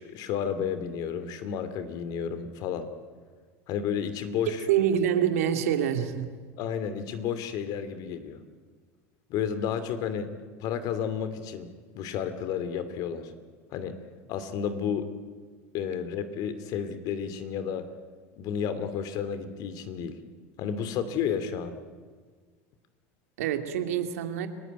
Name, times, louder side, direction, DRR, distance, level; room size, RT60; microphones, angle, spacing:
voice 1, 0.0-2.9 3.7-4.6 6.6-8.4 9.3-10.3 10.6-11.7 11.9-13.3 13.7-14.0 14.3-15.1 15.7-17.9 18.4-20.2 20.6-21.7, left 7 dB, 55° left, 11 dB, 2.9 m, -31 dB
voice 2, 4.7-6.3 23.4-24.5, right 9 dB, 85° right, 6 dB, 2.7 m, -26 dB
30.0 x 18.5 x 9.5 m, 1.5 s
supercardioid pair, 105°, 8 cm